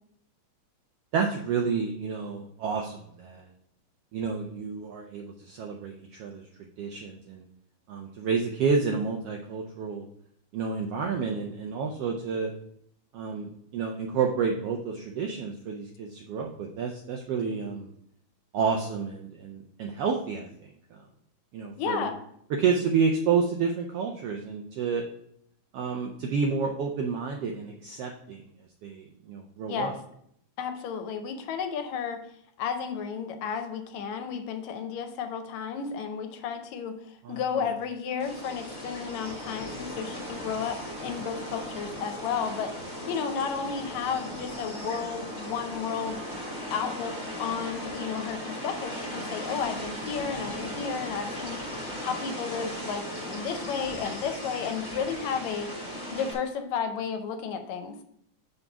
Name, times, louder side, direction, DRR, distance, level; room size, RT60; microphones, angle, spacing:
voice 1, 1.1-3.5 4.1-6.5 6.8-7.4 7.9-10.1 10.5-12.5 13.1-17.9 18.5-21.0 21.5-22.1 22.6-25.0 25.7-28.4 28.8-29.9 37.2-37.7, right 5 dB, 80° right, 2 dB, 1.3 m, -30 dB
voice 2, 21.8-22.2 29.7-30.0 30.6-32.2 32.6-46.2 46.7-51.6 52.0-55.7 56.1-57.9, left 6 dB, 75° left, 7 dB, 1.9 m, -33 dB
sound 1, 38.2-56.3, equal, 30° left, 1.5 m, -37 dB
5.7 x 4.0 x 5.9 m, 0.72 s
omnidirectional pair, 3.4 m